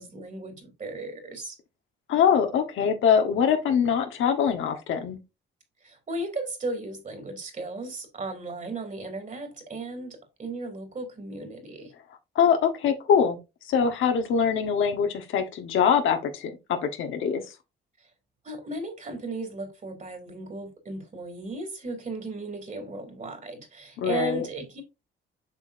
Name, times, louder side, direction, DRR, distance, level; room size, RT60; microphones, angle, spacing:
voice 1, 0.0-1.6 5.8-11.9 18.4-24.8, right 2 dB, 40° right, 2.9 m, -36 dB
voice 2, 2.1-5.2 12.3-13.4 13.7-16.5 16.8-17.4 24.0-24.4, left 7 dB, 80° left, 1.4 m, -23 dB
7.2 x 5.8 x 2.7 m
cardioid pair, 90°, 20 cm